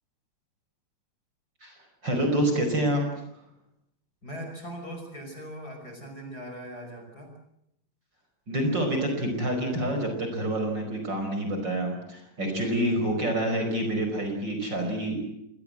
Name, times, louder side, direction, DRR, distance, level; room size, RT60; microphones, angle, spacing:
voice 1, 2.0-3.0 8.5-15.2, right 1 dB, 35° right, 4 dB, 5.7 m, -27 dB
voice 2, 4.2-7.3, equal, 30° left, 3 dB, 6.1 m, -40 dB
27.0 x 20.0 x 7.9 m, 0.79 s
omnidirectional pair, 3.4 m